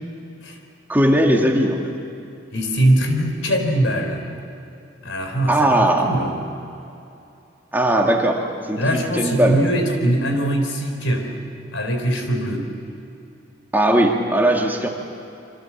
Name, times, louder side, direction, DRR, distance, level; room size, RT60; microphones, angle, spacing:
voice 1, 0.9-1.9 5.5-6.2 7.7-8.4 8.7-9.6 13.7-14.9, right 1 dB, 10° right, 1 dB, 1.9 m, -18 dB
voice 2, 2.5-4.2 5.0-6.4 8.8-11.3 11.7-12.7, right 1 dB, 80° left, 4 dB, 3.9 m, -21 dB
27.0 x 25.0 x 7.2 m, 2.7 s
head